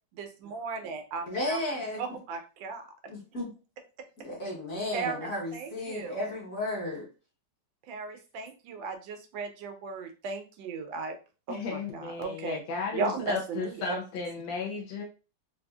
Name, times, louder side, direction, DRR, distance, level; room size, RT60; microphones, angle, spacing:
voice 1, 0.2-1.6 2.0-2.8 4.9-6.2 7.9-11.1 11.5-12.6 12.9-14.0, right 4 dB, 80° right, 6 dB, 1.3 m, -36 dB
voice 2, 1.3-2.0 3.1-3.5 4.2-7.1, left 1 dB, 50° left, -4 dB, 1.4 m, -33 dB
voice 3, 11.5-15.0, left 4 dB, 80° left, 0 dB, 1.4 m, -35 dB
4.0 x 2.5 x 2.3 m, 0.33 s
omnidirectional pair, 2.1 m